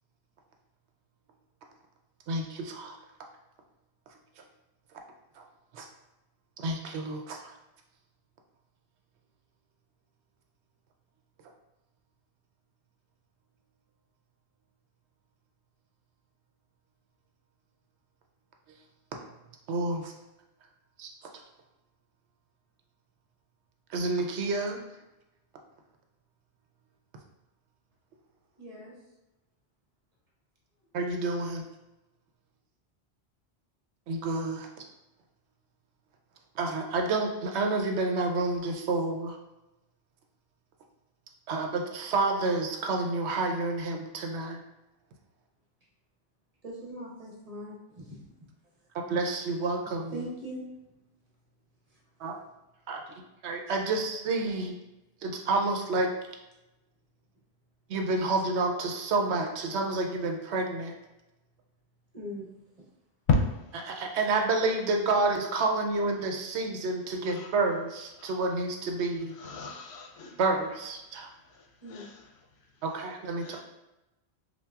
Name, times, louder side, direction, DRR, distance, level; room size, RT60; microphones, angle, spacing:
voice 1, 2.3-2.9 5.7-5.9 6.6-7.5 19.7-20.1 21.0-21.1 23.9-24.8 30.9-31.6 34.1-34.7 36.6-39.4 41.5-44.6 48.9-50.3 52.2-52.4 52.9-53.0 53.4-54.7 55.2-56.1 57.9-60.9 63.8-69.3 70.4-71.3 72.8-73.6, right 3 dB, 85° right, 3 dB, 0.9 m, -29 dB
voice 2, 28.6-28.9 46.6-48.3 50.1-50.6 62.1-62.5 71.8-72.1, equal, 40° right, -4 dB, 0.9 m, -40 dB
voice 3, 69.4-70.4 71.5-72.3 73.4-73.6, left 4 dB, 75° left, 2 dB, 0.8 m, -32 dB
5.6 x 2.3 x 2.3 m, 0.97 s
omnidirectional pair, 1.1 m